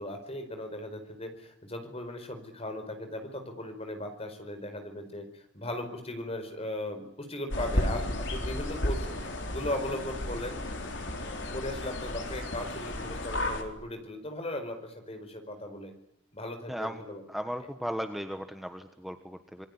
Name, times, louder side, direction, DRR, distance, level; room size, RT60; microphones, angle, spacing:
voice 1, 0.0-9.2 9.5-10.6 11.5-15.9 16.3-17.2, left 1 dB, 30° left, 7 dB, 4.7 m, -37 dB
sound 1, 7.5-13.6, left 1 dB, 70° left, 4.1 m, -33 dB
voice 2, 16.7-17.0 17.3-19.7, equal, ahead, 7 dB, 1.3 m, -36 dB
27.0 x 21.5 x 9.7 m, 0.74 s
head